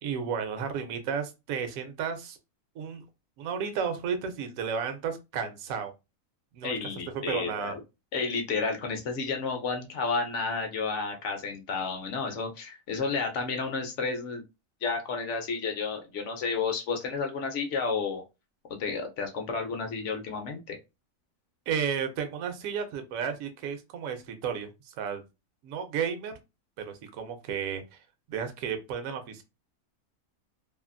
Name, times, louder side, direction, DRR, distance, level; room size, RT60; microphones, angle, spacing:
voice 1, 0.0-2.4 2.8-3.0 3.4-5.9 6.5-6.8 7.1-7.8 21.7-25.2 25.6-26.3 26.8-28.0 28.3-29.4, right 7 dB, 70° right, 8 dB, 1.0 m, -33 dB
voice 2, 6.6-7.8 8.1-14.4 14.8-18.2 18.8-20.8, left 4 dB, 60° left, 4 dB, 0.9 m, -31 dB
2.7 x 2.5 x 2.5 m, 0.25 s
omnidirectional pair, 1.6 m